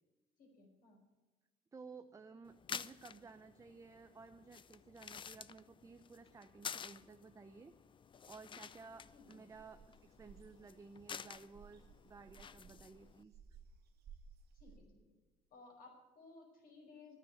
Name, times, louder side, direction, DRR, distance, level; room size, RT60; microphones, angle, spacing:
voice 1, 0.4-1.0 9.1-9.4 14.5-15.0 15.5-17.2, left 3 dB, 60° left, 2 dB, 5.0 m, -59 dB
voice 2, 1.7-7.7 8.3-13.4, right 4 dB, 20° right, 8 dB, 0.7 m, -56 dB
sound 1, 2.4-13.2, left 7 dB, 30° left, 0.4 m, -51 dB
sound 2, 9.5-14.8, right 6 dB, 70° right, 2.3 m, -60 dB
11.5 x 9.4 x 9.0 m, 1.2 s
cardioid pair, 110°, 17 cm